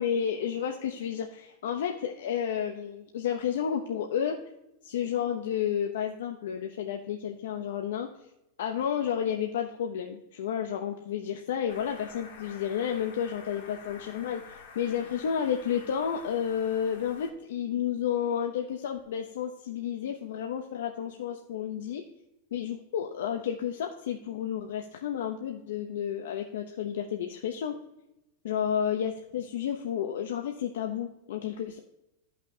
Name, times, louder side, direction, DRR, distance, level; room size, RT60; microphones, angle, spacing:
voice 1, 0.0-4.4 4.8-8.1 8.6-22.0 22.5-27.8 28.4-31.8, left 8 dB, 85° left, 4 dB, 0.8 m, -31 dB
sound 1, 11.7-17.3, left 5 dB, 65° left, 1.7 m, -49 dB
13.0 x 5.8 x 2.8 m, 0.87 s
supercardioid pair, 175°, 0 cm